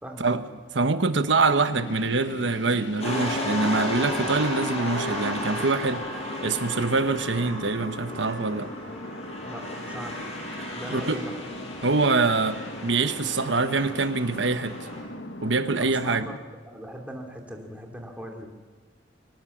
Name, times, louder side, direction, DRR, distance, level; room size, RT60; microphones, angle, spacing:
voice 1, 0.7-6.0 6.4-8.7 10.9-11.2 11.8-14.9 15.4-16.3, right 3 dB, 70° right, 1.3 m, -24 dB
sound 1, 1.4-16.4, left 1 dB, 65° left, 1.6 m, -40 dB
sound 2, 3.0-15.0, left 1 dB, 35° left, 5.9 m, -34 dB
voice 2, 9.4-10.2 10.7-11.3 15.8-16.3 16.6-18.5, right 1 dB, 5° right, 3.1 m, -39 dB
24.0 x 18.0 x 7.4 m
head